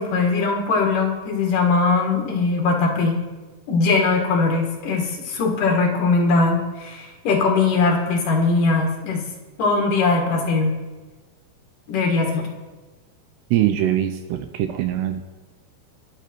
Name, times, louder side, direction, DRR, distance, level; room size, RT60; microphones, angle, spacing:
voice 1, 0.0-3.2 3.7-9.2 9.6-10.7 11.9-12.5, left 3 dB, 55° left, 1 dB, 2.9 m, -20 dB
voice 2, 13.5-15.3, right 12 dB, 80° right, 8 dB, 2.6 m, -22 dB
22.5 x 8.2 x 4.5 m, 1.3 s
omnidirectional pair, 5.3 m